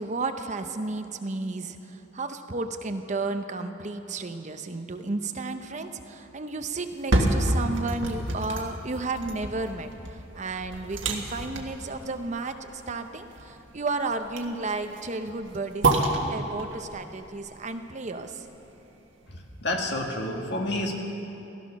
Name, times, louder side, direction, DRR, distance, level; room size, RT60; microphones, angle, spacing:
voice 1, 0.0-9.9 10.3-16.0 16.3-18.4, right 3 dB, 40° right, 8 dB, 0.7 m, -33 dB
sound 1, 6.8-18.9 19.3-19.4, right 2 dB, 90° right, 1.6 m, -29 dB
voice 2, 19.3-21.0, left 1 dB, 65° left, 1 dB, 1.8 m, -30 dB
16.0 x 13.5 x 6.1 m, 3.0 s
head